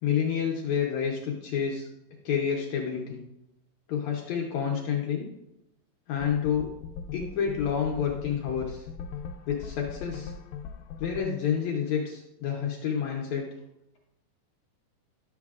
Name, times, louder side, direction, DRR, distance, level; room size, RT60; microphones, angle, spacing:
voice 1, 0.0-1.9 2.3-3.2 3.9-5.3 6.1-6.7 7.1-8.9 9.5-10.3 11.0-13.5, left 7 dB, 70° left, 0 dB, 1.9 m, -29 dB
sound 1, 6.2-11.2, left 6 dB, 85° left, 2.3 m, -40 dB
11.0 x 7.3 x 2.4 m, 0.88 s
omnidirectional pair, 4.0 m